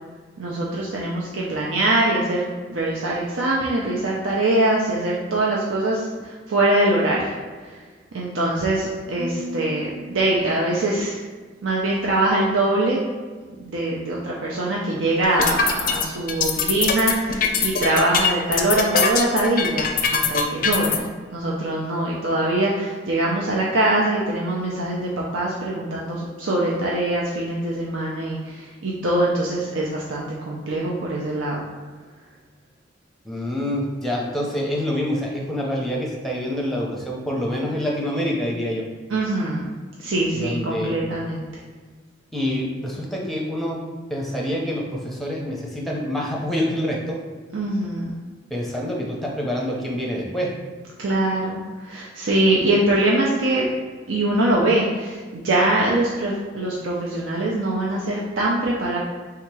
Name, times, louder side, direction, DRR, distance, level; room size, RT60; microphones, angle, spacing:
voice 1, 0.4-7.4 7.6-7.8 8.1-11.2 11.6-13.0 13.6-21.1 21.3-31.6 39.1-39.7 40.0-41.5 47.5-48.1 51.0-53.7 54.1-59.0, right 1 dB, 85° right, -4 dB, 0.6 m, -23 dB
Marimba xylophone, 9.2-11.3, equal, 45° right, 0.6 m, -37 dB
sound 1, 15.2-21.0, left 5 dB, 45° left, 0.4 m, -22 dB
voice 2, 33.2-38.8 40.3-40.9 42.3-43.8 44.1-47.2 48.5-50.5, equal, ahead, -2 dB, 0.6 m, -26 dB
3.5 x 2.8 x 4.6 m, 1.4 s
head